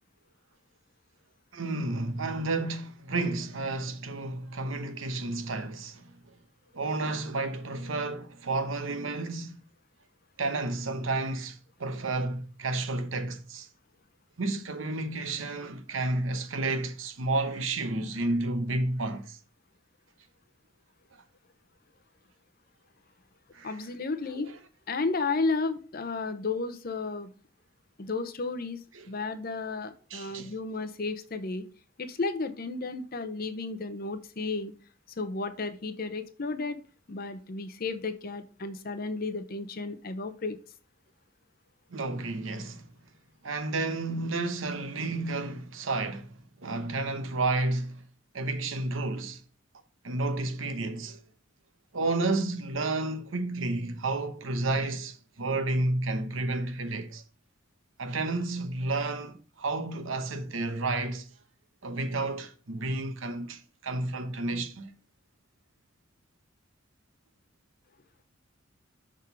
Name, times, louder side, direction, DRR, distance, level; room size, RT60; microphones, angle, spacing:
voice 1, 1.5-6.4 6.7-9.6 10.4-13.7 14.4-19.4 23.5-23.8 24.3-24.6 28.9-29.1 30.1-30.5 41.9-42.8 43.4-48.0 48.3-49.4 50.0-51.2 51.9-57.2 58.0-61.3 61.8-64.9, right 2 dB, 80° right, 0.9 m, -31 dB
voice 2, 23.6-24.5 24.9-27.3 28.0-28.8 29.1-31.7 32.0-34.7 35.2-36.8 37.1-40.6, left 3 dB, 45° left, 0.7 m, -33 dB
6.2 x 3.8 x 5.6 m
head